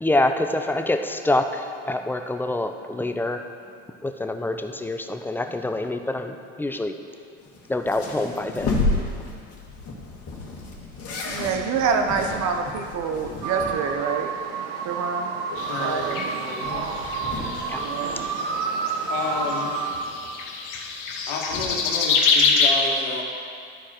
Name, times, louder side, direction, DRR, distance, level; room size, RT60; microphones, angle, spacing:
voice 1, 0.0-3.4 4.0-6.9 7.7-8.8 17.3-17.9, left 2 dB, 5° left, 7 dB, 0.3 m, -26 dB
sound 1, 7.4-14.1 14.4-14.5 14.8-14.9 15.3-18.9 19.1-20.3 21.1-21.8, left 2 dB, 40° left, 1.9 m, -32 dB
voice 2, 11.2-14.3 14.8-15.3 15.6-16.2 17.8-18.3, right 5 dB, 50° right, 4 dB, 0.8 m, -26 dB
sound 2, 13.4-19.9, right 5 dB, 75° right, 1.0 m, -30 dB
sound 3, 15.6-18.9 19.4-22.7, left 5 dB, 55° left, 1.2 m, -26 dB
voice 3, 15.7-16.9 19.1-19.7 21.3-23.2, left 4 dB, 70° left, -1 dB, 1.7 m, -30 dB
13.0 x 4.7 x 4.3 m, 2.3 s
hypercardioid pair, 90°, 37 cm